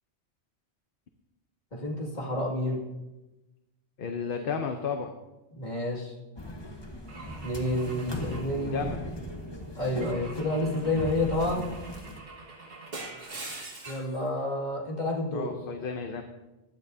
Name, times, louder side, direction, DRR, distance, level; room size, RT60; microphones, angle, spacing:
voice 1, 1.7-2.8 5.5-6.1 7.4-8.9 9.8-11.7 13.9-15.5, left 1 dB, 40° left, -2 dB, 2.4 m, -29 dB
voice 2, 4.0-5.1 8.5-9.0 15.3-16.2, left 6 dB, 55° left, 5 dB, 0.9 m, -33 dB
sound 1, 6.4-12.2, equal, 25° left, 1.1 m, -38 dB
Car / Engine / Glass, 7.1-9.3 10.0-14.2, right 3 dB, 55° right, 1.8 m, -44 dB
15.0 x 11.0 x 2.7 m, 1.1 s
omnidirectional pair, 1.2 m